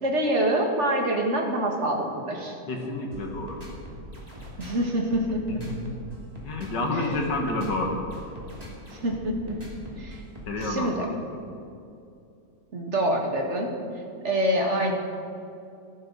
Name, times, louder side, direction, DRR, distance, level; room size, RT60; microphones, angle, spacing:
voice 1, 0.0-2.6 4.6-5.6 6.9-7.5 8.9-9.6 9.9-10.2 10.6-11.1 12.7-14.9, right 1 dB, 45° right, 1 dB, 2.0 m, -26 dB
voice 2, 2.7-3.6 5.5-5.7 6.4-8.0 10.5-11.4, left 2 dB, 85° left, 1 dB, 2.4 m, -29 dB
sound 1, 3.1-10.9, equal, 20° right, 2.9 m, -42 dB
15.5 x 13.5 x 4.1 m, 2.6 s
omnidirectional pair, 1.8 m